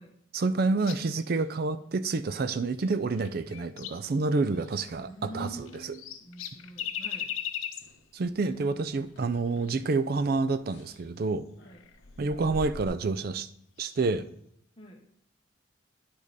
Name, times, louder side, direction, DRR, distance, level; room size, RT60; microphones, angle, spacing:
voice 1, 0.3-5.7 8.1-11.4 12.2-13.5 13.8-14.3, right 3 dB, 45° right, 13 dB, 0.4 m, -28 dB
sound 1, 0.8-1.4 2.8-4.1 4.5-4.7 5.4-8.0 9.5-9.7 10.9-11.0 11.6-12.0 13.8-14.1, left 10 dB, 85° left, 0.6 m, -39 dB
sound 2, 4.8-6.2 6.5-6.9 7.2-7.4 7.8-12.9, left 1 dB, 55° left, 1.1 m, -49 dB
voice 2, 5.1-7.3 11.6-11.9 14.8-15.0, equal, 25° left, 0 dB, 1.1 m, -45 dB
10.0 x 5.1 x 4.0 m, 0.68 s
head